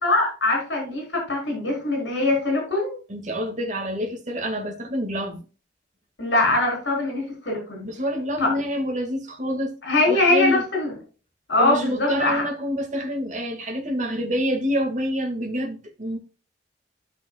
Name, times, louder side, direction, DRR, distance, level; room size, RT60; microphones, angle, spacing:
voice 1, 0.0-3.0 6.2-7.8 8.4-8.5 9.8-10.9 11.5-12.4, left 2 dB, 75° left, 4.2 m, -22 dB
voice 2, 3.1-5.4 7.8-9.7 10.1-10.6 11.6-16.2, equal, 40° right, 1.9 m, -27 dB
13.0 x 6.0 x 2.3 m
head